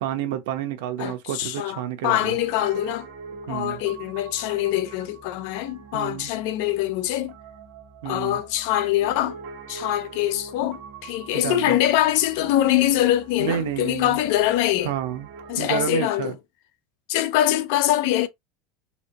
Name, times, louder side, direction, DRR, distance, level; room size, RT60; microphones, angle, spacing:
voice 1, 0.0-2.4 3.5-3.8 5.9-6.3 8.0-8.4 11.3-11.8 13.4-14.2 14.8-15.3 15.6-16.3, right 10 dB, 70° right, 0.8 m, -29 dB
voice 2, 1.0-3.1 3.5-7.3 8.0-9.4 9.7-14.9 15.5-16.3 17.1-18.3, left 13 dB, 55° left, 0.4 m, -23 dB
Piano, 2.1-15.9, right 4 dB, 45° right, 1.2 m, -43 dB
4.1 x 2.1 x 2.8 m
supercardioid pair, 175°, 0 cm